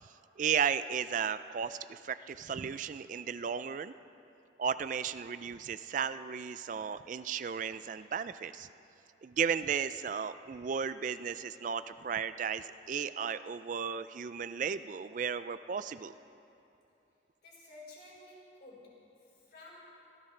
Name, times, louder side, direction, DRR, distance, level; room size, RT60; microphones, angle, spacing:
voice 1, 0.4-3.9 4.6-8.7 9.2-16.1, right 7 dB, 45° right, 13 dB, 0.3 m, -34 dB
voice 2, 17.4-19.8, left 2 dB, 55° left, -5 dB, 4.5 m, -53 dB
25.5 x 16.5 x 3.3 m, 2.8 s
head